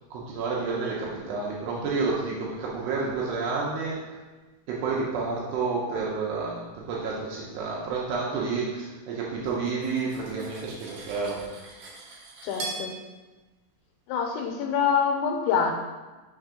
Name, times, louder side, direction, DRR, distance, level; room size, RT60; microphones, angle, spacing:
voice 1, 0.1-4.2 4.7-11.4, right 4 dB, 80° right, -4 dB, 2.6 m, -30 dB
Cutlery silverware, 9.6-12.8, right 3 dB, 65° right, 2.9 m, -40 dB
voice 2, 12.4-12.9 14.1-15.7, left 6 dB, 80° left, 3 dB, 2.9 m, -25 dB
6.6 x 3.5 x 4.9 m, 1.2 s
omnidirectional pair, 5.5 m